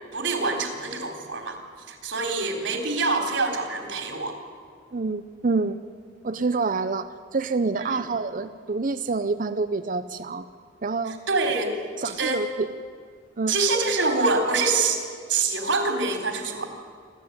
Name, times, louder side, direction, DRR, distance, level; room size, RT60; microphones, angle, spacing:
voice 1, 0.1-1.6 1.9-4.4 7.9-8.0 11.1-11.7 12.0-12.4 13.5-15.0 15.3-16.7, right 3 dB, 80° right, 5 dB, 4.0 m, -25 dB
voice 2, 4.9-5.8 6.2-10.5 10.8-11.2 12.0-12.7 13.4-13.5, right 3 dB, 45° right, 11 dB, 0.7 m, -27 dB
27.5 x 13.0 x 9.5 m, 2.1 s
head